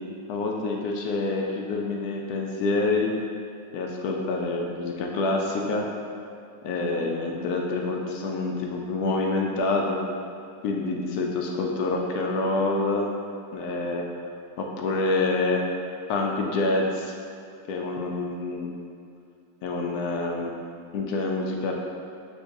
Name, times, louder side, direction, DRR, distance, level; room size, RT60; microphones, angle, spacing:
voice 1, 0.3-3.1 3.7-5.9 6.6-10.0 10.6-13.1 13.5-14.0 14.6-15.6 16.1-17.1 17.7-18.7 19.6-20.5 20.9-21.7, left 3 dB, 70° left, 0 dB, 0.9 m, -27 dB
7.8 x 2.6 x 2.6 m, 2.5 s
omnidirectional pair, 1.9 m